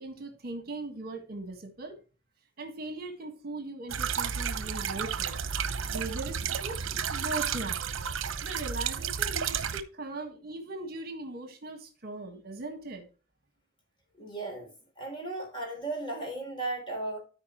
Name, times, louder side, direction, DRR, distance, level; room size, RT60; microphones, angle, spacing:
voice 1, 0.0-2.0 2.6-5.4 5.9-6.8 7.1-7.9 8.4-13.1, right 2 dB, 50° right, 1.7 m, -39 dB
sound 1, 3.9-9.8, right 7 dB, 70° right, 0.8 m, -32 dB
voice 2, 14.2-14.7 15.0-17.2, right 2 dB, 25° left, 3.3 m, -35 dB
13.5 x 4.8 x 3.0 m
head